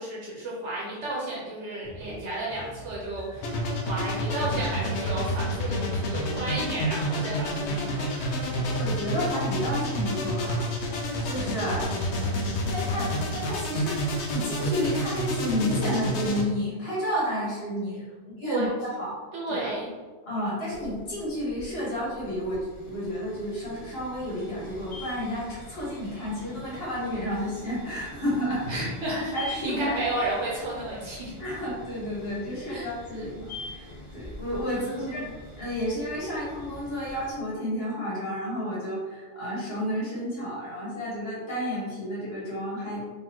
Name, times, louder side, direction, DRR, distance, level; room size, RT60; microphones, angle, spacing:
voice 1, 0.0-8.6 11.7-12.4 12.8-12.9 18.4-18.7 19.3-19.9 28.7-31.3 32.7-32.9 33.1-33.2 34.6-35.2, right 1 dB, 75° right, -5 dB, 1.2 m, -33 dB
sound 1, 1.8-9.8, equal, 5° left, 1.2 m, -46 dB
sound 2, 3.4-16.4, equal, 70° left, 1.0 m, -29 dB
voice 2, 8.5-10.6 11.2-11.9 12.6-19.2 19.5-19.7 20.3-28.7 29.0-29.9 31.4-43.1, equal, 55° left, -7 dB, 1.6 m, -31 dB
sound 3, 20.7-37.3, left 2 dB, 30° left, 0.7 m, -44 dB
4.0 x 3.2 x 2.9 m, 1.4 s
omnidirectional pair, 1.2 m